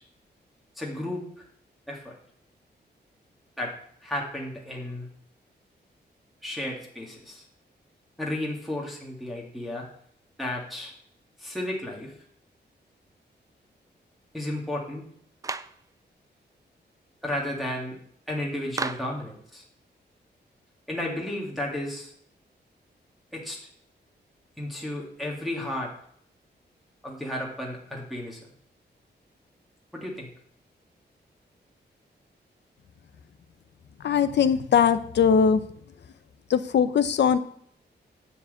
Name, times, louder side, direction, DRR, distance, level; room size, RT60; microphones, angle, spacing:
voice 1, 0.8-1.4 1.9-2.1 3.6-3.7 4.0-5.1 6.4-7.4 8.2-9.9 10.4-10.9 11.4-12.1 14.3-15.0 17.2-18.0 18.3-19.6 20.9-22.1 23.3-23.6 24.6-25.9 27.0-28.4 29.9-30.3, left 1 dB, ahead, -3 dB, 1.8 m, -33 dB
Clapping, 15.4-15.8 18.8-19.2, right 4 dB, 20° right, 0.3 m, -32 dB
voice 2, 34.0-35.7 36.5-37.4, left 7 dB, 75° left, 12 dB, 0.8 m, -21 dB
9.9 x 4.7 x 7.9 m, 0.65 s
wide cardioid pair, 180°, 18 cm